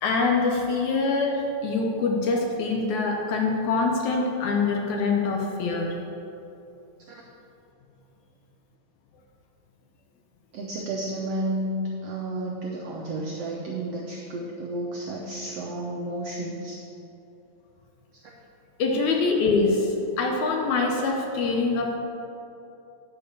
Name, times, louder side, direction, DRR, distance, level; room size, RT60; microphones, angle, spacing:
voice 1, 0.0-6.0 18.8-22.0, left 3 dB, 75° left, 2 dB, 1.9 m, -24 dB
voice 2, 10.5-16.8, right 1 dB, 80° right, -2 dB, 1.4 m, -31 dB
9.6 x 4.8 x 6.8 m, 2.8 s
omnidirectional pair, 3.8 m